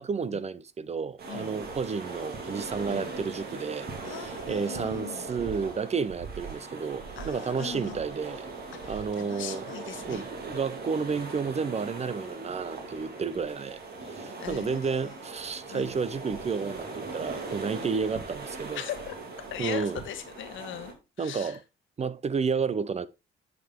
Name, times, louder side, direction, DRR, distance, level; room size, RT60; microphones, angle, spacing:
voice 1, 0.0-8.5 8.9-9.7 10.1-18.8 19.6-20.0 21.2-21.6 22.0-23.1, right 5 dB, 35° right, 0.5 m, -31 dB
sound 1, 1.2-20.9, right 3 dB, 50° right, 2.2 m, -40 dB
voice 2, 1.3-1.6 2.9-3.2 4.0-5.2 7.2-8.0 8.8-10.2 14.4-15.3 15.7-15.9 18.7-19.1 19.5-21.6, left 10 dB, 80° left, 1.3 m, -40 dB
9.4 x 4.9 x 3.6 m
cardioid pair, 90°, 20 cm